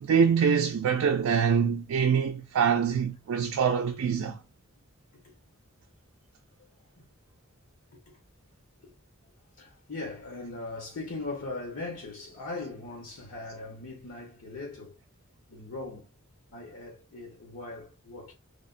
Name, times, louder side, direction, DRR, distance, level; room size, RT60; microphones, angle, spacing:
voice 1, 0.0-4.4, right 7 dB, 85° right, 0.3 m, -24 dB
voice 2, 9.6-15.0 15.5-16.1 16.5-18.3, left 2 dB, 85° left, 0.9 m, -40 dB
3.4 x 2.1 x 2.4 m
head